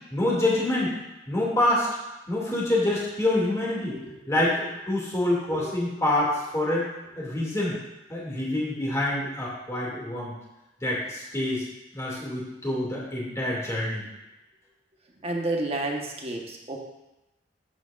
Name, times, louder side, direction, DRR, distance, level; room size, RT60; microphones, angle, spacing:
voice 1, 0.1-1.0 1.3-1.9 2.3-4.0 4.3-6.9 7.2-7.8 8.1-10.3 10.8-11.7 11.9-14.1, left 1 dB, 20° left, -5 dB, 2.4 m, -26 dB
voice 2, 3.9-4.4 5.5-5.7 15.2-16.8, right 2 dB, 35° right, 0 dB, 1.2 m, -31 dB
9.6 x 8.0 x 2.5 m, 0.96 s
head